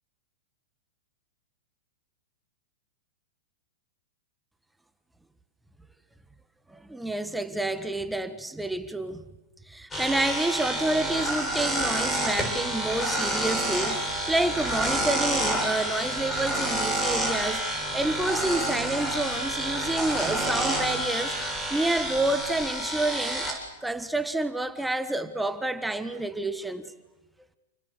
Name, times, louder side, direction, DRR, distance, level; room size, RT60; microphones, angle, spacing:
voice 1, 6.7-9.2 9.7-17.7 17.9-21.3 21.7-26.8, right 2 dB, 5° right, 1.5 m, -29 dB
sound 1, 9.9-23.5, right 1 dB, 15° left, 7.8 m, -28 dB
29.0 x 21.5 x 8.3 m
hypercardioid pair, 120°, 0 cm